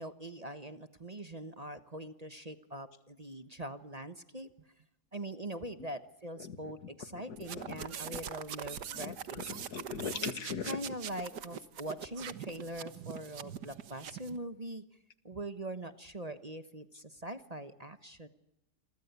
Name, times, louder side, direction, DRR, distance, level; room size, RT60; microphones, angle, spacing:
voice 1, 0.0-4.5 5.1-9.6 10.7-14.8 15.2-18.3, right 1 dB, 25° right, 11 dB, 1.2 m, -42 dB
voice 2, 7.4-8.2 8.9-9.2 9.5-10.8, left 6 dB, 75° left, 13 dB, 2.0 m, -40 dB
sound 1, 7.4-14.4, right 8 dB, 85° right, 1.8 m, -43 dB
28.5 x 23.0 x 8.3 m, 0.84 s
omnidirectional pair, 1.7 m